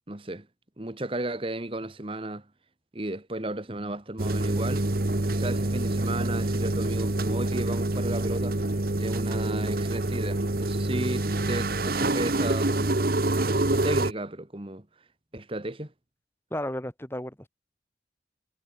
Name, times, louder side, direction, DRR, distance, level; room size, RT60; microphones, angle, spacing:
voice 1, 0.1-0.5 0.8-2.5 2.9-4.9 5.3-8.6 9.0-15.1 15.3-15.9, right 1 dB, 30° right, 1.4 m, -34 dB
sound 1, 4.2-14.1, right 2 dB, 55° right, 1.2 m, -26 dB
voice 2, 16.5-17.5, left 1 dB, 15° left, 2.2 m, -33 dB
head